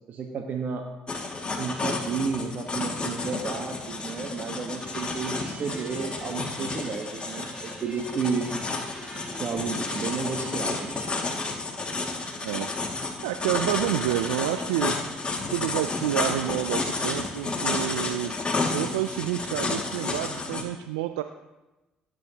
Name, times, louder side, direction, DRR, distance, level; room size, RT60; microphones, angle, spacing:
voice 1, 0.1-0.9 1.5-8.5 9.4-10.9, right 5 dB, 55° right, 2 dB, 1.3 m, -32 dB
quick writing with pencil on paper, 1.1-20.6, left 3 dB, 30° left, 2.2 m, -31 dB
C Major Scale, 4.8-11.2, right 2 dB, 35° right, 3.8 m, -44 dB
voice 2, 12.4-15.0 15.5-18.3 18.7-21.2, right 14 dB, 85° right, 9 dB, 0.4 m, -29 dB
17.5 x 9.1 x 2.9 m, 1.0 s
hypercardioid pair, 55°, 3 cm